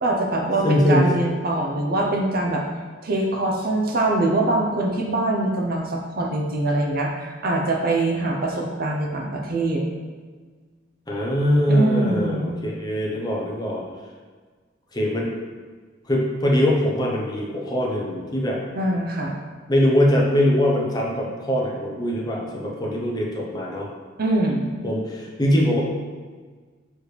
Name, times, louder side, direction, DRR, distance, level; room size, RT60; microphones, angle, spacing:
voice 1, 0.0-2.6 3.0-9.8 11.7-12.6 18.7-19.3 24.2-24.7, right 2 dB, 50° right, 0 dB, 0.7 m, -23 dB
voice 2, 0.6-1.1 11.1-13.8 14.9-15.3 16.1-18.6 19.7-23.9 24.8-25.8, equal, 20° left, -2 dB, 0.9 m, -22 dB
6.2 x 4.8 x 3.3 m, 1.5 s
head